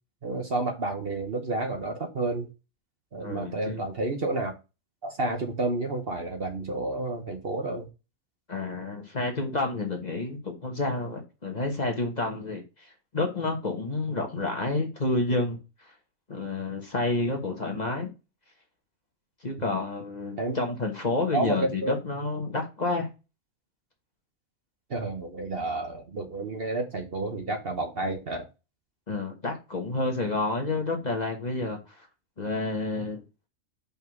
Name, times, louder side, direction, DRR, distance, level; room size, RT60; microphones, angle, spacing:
voice 1, 0.2-2.5 3.1-4.5 5.0-7.9 19.6-19.7 20.4-20.6 21.3-21.9 24.9-28.5, right 2 dB, 45° right, 1.1 m, -30 dB
voice 2, 3.2-3.8 8.5-15.6 16.3-18.1 19.4-23.1 29.1-32.0 32.4-33.2, left 2 dB, 30° left, 1.3 m, -29 dB
5.5 x 4.5 x 4.6 m
omnidirectional pair, 1.4 m